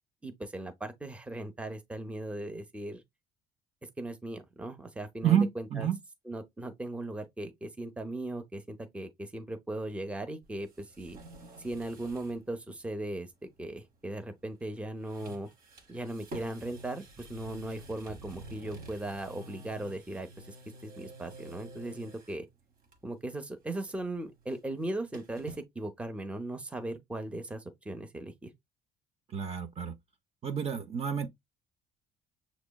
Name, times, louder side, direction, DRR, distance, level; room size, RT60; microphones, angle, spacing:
voice 1, 0.2-3.0 4.0-5.9 6.3-11.2 11.6-15.5 15.9-20.5 20.8-22.5 23.0-28.5, right 1 dB, 5° right, 0.7 m, -38 dB
voice 2, 5.2-6.0 29.3-30.0 30.4-31.3, right 9 dB, 35° right, 0.7 m, -29 dB
sound 1, 10.4-12.4 12.7-12.8 14.5-14.8 15.0-22.4 22.8-23.3 23.5-25.6, right 1 dB, 55° right, 1.2 m, -49 dB
6.0 x 3.0 x 2.3 m
cardioid pair, 110°, 17 cm